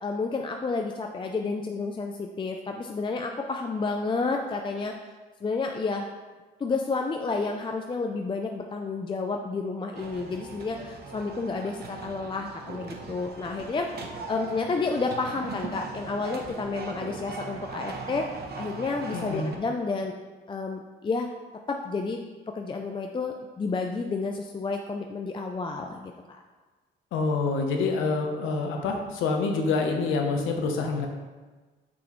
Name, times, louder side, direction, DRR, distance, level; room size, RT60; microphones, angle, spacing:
voice 1, 0.0-4.9 5.4-6.1 6.6-13.9 14.3-18.3 18.5-20.1 20.5-21.3 21.7-22.2 22.5-26.4, left 4 dB, 25° left, 3 dB, 0.4 m, -30 dB
sound 1, 9.9-19.6, right 3 dB, 55° right, 0.9 m, -39 dB
voice 2, 19.1-19.5 27.1-31.1, left 4 dB, 85° left, 3 dB, 0.9 m, -27 dB
6.2 x 5.9 x 3.1 m, 1.3 s
cardioid pair, 90°, 20 cm